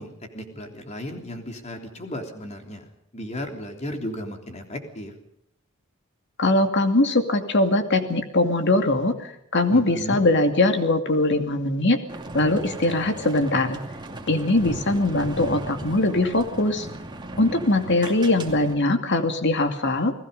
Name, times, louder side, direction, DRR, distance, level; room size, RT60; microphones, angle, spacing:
voice 1, 0.0-2.8 3.1-5.1 9.7-10.2, left 1 dB, 35° left, 4 dB, 3.4 m, -35 dB
voice 2, 6.4-12.0 12.3-13.8 14.3-16.9 17.4-20.1, left 2 dB, 60° left, 7 dB, 2.4 m, -21 dB
sound 1, 12.1-18.7, right 1 dB, 20° right, 2.6 m, -37 dB
29.5 x 18.5 x 5.4 m, 0.78 s
head